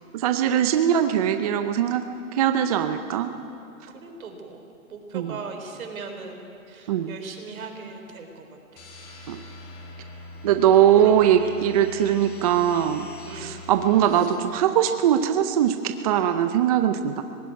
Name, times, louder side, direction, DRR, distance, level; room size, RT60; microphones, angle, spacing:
voice 1, 0.1-2.0 2.3-3.3 5.1-5.4 6.9-7.2 9.3-9.4 10.4-13.1 13.3-17.2, right 10 dB, 25° right, 8 dB, 0.6 m, -21 dB
voice 2, 3.9-4.6 4.9-8.4 8.7-8.8 11.0-11.6 13.3-13.6, right 4 dB, 75° right, 4 dB, 3.9 m, -38 dB
sound 1, 8.8-14.3, left 1 dB, 20° left, 3.0 m, -42 dB
20.0 x 16.5 x 9.4 m, 2.6 s
hypercardioid pair, 160°, 42 cm